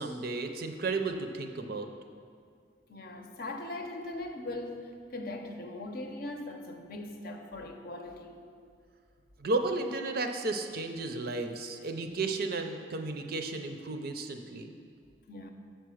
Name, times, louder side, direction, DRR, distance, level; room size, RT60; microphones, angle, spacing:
voice 1, 0.0-1.9 9.4-14.7, right 3 dB, 55° right, 5 dB, 0.5 m, -33 dB
voice 2, 2.9-8.4 15.3-15.5, left 2 dB, 55° left, 5 dB, 0.6 m, -40 dB
6.5 x 4.6 x 6.3 m, 2.2 s
head